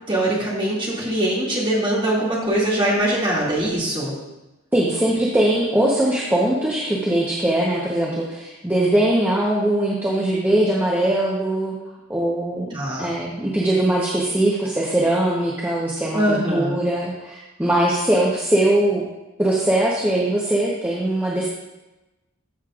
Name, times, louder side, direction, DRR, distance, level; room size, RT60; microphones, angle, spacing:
voice 1, 0.1-4.1 12.7-13.1 16.1-16.8, right 1 dB, 25° right, -5 dB, 2.4 m, -22 dB
voice 2, 4.7-11.7 12.1-19.0 19.4-21.5, right 1 dB, 10° right, -5 dB, 1.0 m, -21 dB
13.5 x 6.7 x 2.5 m, 1.0 s
head